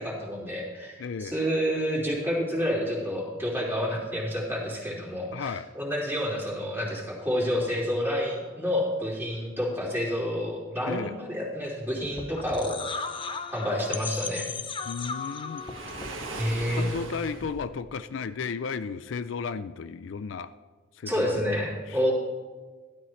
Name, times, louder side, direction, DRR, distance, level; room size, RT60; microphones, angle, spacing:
voice 1, 0.0-13.1 13.5-14.5 16.4-16.9 21.1-22.1, equal, 10° right, -4 dB, 3.0 m, -29 dB
voice 2, 1.0-1.4 5.3-5.7 10.9-11.1 14.9-15.6 16.7-20.5 20.9-21.5 21.9-22.1, left 5 dB, 65° left, 12 dB, 0.4 m, -34 dB
sound 1, 12.0-17.8, left 5 dB, 25° left, 0.7 m, -37 dB
Waves surf, 15.5-17.6, right 3 dB, 85° right, 1.7 m, -39 dB
12.5 x 12.0 x 3.2 m, 1.4 s
head